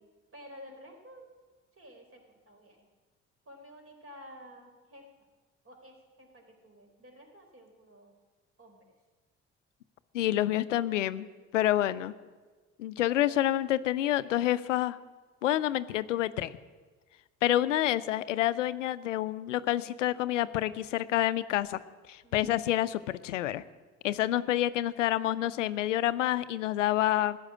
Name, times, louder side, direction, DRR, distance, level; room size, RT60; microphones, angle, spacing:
voice 1, 0.3-1.3 1.7-2.9 3.5-5.1 5.6-8.1 8.6-8.9 10.7-10.9 22.2-22.5, equal, 35° right, 3 dB, 4.1 m, -52 dB
voice 2, 10.1-11.3 11.5-12.1 12.8-15.0 15.4-16.5 17.4-21.8 22.1-23.6 24.0-27.4, left 13 dB, 90° left, 16 dB, 0.5 m, -28 dB
15.0 x 6.5 x 9.9 m, 1.3 s
hypercardioid pair, 45°, 36 cm